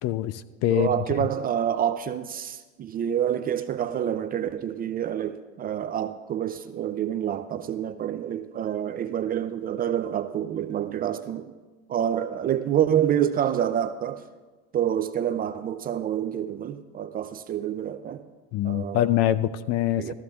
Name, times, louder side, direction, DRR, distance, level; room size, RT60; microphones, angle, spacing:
voice 1, 0.0-0.9 18.5-20.1, left 12 dB, 45° left, 0.5 m, -24 dB
voice 2, 0.7-11.5 11.9-14.2 14.7-18.2 18.6-19.0 20.0-20.1, right 10 dB, 25° right, 0.4 m, -27 dB
14.0 x 14.0 x 2.4 m
supercardioid pair, 110°, 36 cm